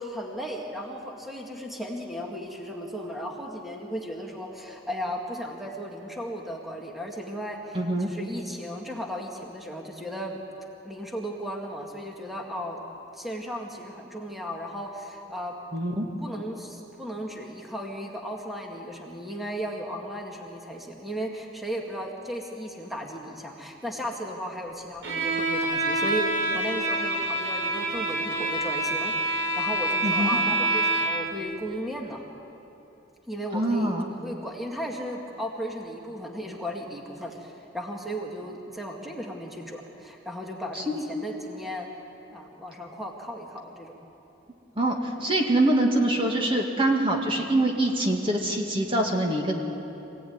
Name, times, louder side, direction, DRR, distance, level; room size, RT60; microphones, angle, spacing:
voice 1, 0.0-7.8 8.1-10.4 10.8-12.8 13.1-15.5 16.2-26.3 26.5-32.2 33.3-41.9 42.3-43.9, equal, ahead, -1 dB, 2.1 m, -35 dB
voice 2, 7.7-8.1 15.7-16.1 30.0-30.3 33.5-34.1 40.7-41.0 44.8-49.5, right 1 dB, 30° right, 1 dB, 2.1 m, -24 dB
Bowed string instrument, 25.0-31.3, right 2 dB, 90° right, 5.2 m, -26 dB
25.5 x 17.0 x 9.6 m, 2.9 s
head